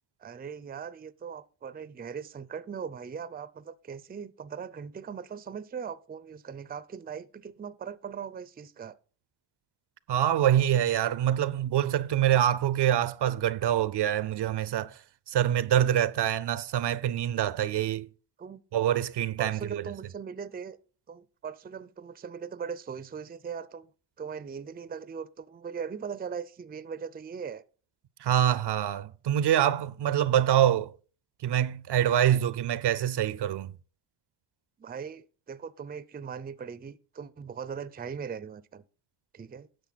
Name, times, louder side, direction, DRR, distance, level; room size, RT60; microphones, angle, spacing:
voice 1, 0.2-9.0 18.4-18.6 19.4-20.8 21.1-23.9 24.2-27.6 34.8-38.8 39.3-39.7, right 6 dB, 20° right, 0.5 m, -39 dB
voice 2, 10.1-15.0 15.3-18.1 18.7-19.8 28.2-30.9 31.4-33.7, right 11 dB, 60° right, 0.6 m, -25 dB
10.0 x 6.8 x 4.0 m
cardioid pair, 100°, 47 cm